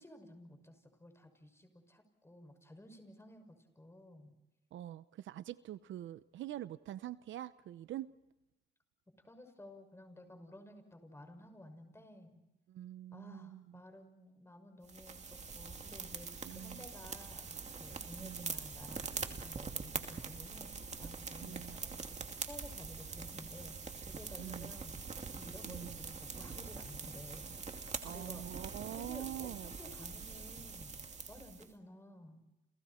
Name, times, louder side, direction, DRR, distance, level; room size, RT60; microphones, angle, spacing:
voice 1, 0.0-4.4 9.2-12.4 13.1-25.0 25.3-28.5 28.9-32.4, left 1 dB, 15° left, 6 dB, 6.4 m, -54 dB
voice 2, 4.7-8.1 12.7-13.8 16.4-16.9 18.2-18.6 21.4-21.8 24.4-24.7 25.7-26.0 28.0-29.7, right 12 dB, 75° right, 15 dB, 0.8 m, -45 dB
sound 1, 14.9-31.7, right 5 dB, 35° right, 2.6 m, -44 dB
30.0 x 30.0 x 4.4 m, 0.97 s
cardioid pair, 90°, 20 cm